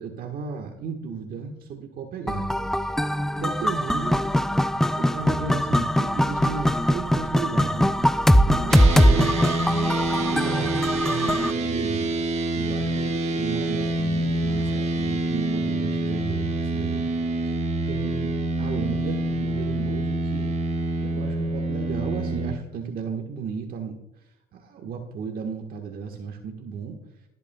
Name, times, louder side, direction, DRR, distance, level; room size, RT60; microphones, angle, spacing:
voice 1, 0.0-2.5 3.0-4.3 4.9-9.4 10.3-12.1 12.5-17.1 17.4-17.6 17.9-18.3 18.6-20.5 21.0-23.9 24.5-27.0, right 5 dB, 60° right, 2 dB, 1.4 m, -34 dB
sound 1, 2.3-11.5, equal, 5° left, 0.4 m, -21 dB
sound 2, 8.7-22.5, right 2 dB, 40° right, 1.6 m, -26 dB
20.0 x 8.3 x 2.3 m, 0.92 s
cardioid pair, 110°, 17 cm